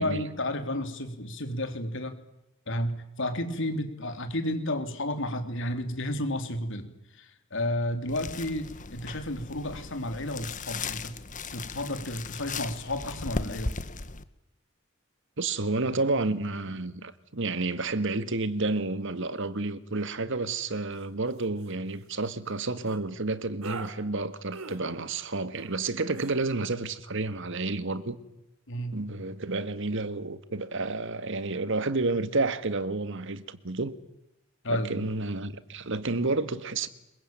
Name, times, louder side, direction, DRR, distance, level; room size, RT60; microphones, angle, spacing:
voice 1, 0.0-2.2 2.7-6.9 7.1-11.2 11.5-13.7 28.7-29.0 34.6-35.1, left 1 dB, 65° left, 3.7 m, -32 dB
sound 1, 8.1-14.2, left 3 dB, 40° left, 1.4 m, -37 dB
voice 2, 15.4-28.2 28.9-34.0 34.7-36.9, right 3 dB, 60° right, 1.8 m, -30 dB
sound 2, 20.9-21.1 21.4-21.7 22.8-23.0 23.6-23.9 24.5-24.8 25.5-25.8 26.1-26.3, right 3 dB, 85° right, 3.7 m, -41 dB
27.0 x 23.0 x 9.1 m
head